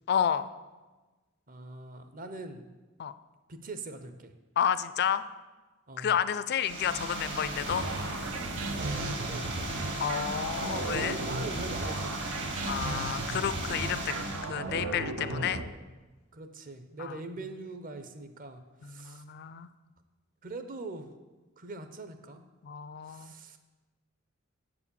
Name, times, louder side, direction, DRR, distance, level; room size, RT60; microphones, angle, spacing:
voice 1, 0.1-0.5 3.0-3.1 4.6-5.2 6.0-7.9 10.0-11.2 12.7-14.1 14.5-15.6 17.0-17.1 18.8-19.7 22.6-23.3, left 8 dB, 55° left, 14 dB, 0.4 m, -30 dB
voice 2, 1.5-2.7 3.5-4.3 5.9-6.1 8.7-9.9 10.8-12.2 16.3-19.2 20.4-21.1 21.6-22.4 23.0-23.6, right 2 dB, 45° right, 8 dB, 0.7 m, -42 dB
sound 1, 6.6-14.5, right 2 dB, 60° right, 2.0 m, -37 dB
sound 2, 7.6-15.7, right 2 dB, 85° right, 0.6 m, -36 dB
7.4 x 4.9 x 6.9 m, 1.2 s
head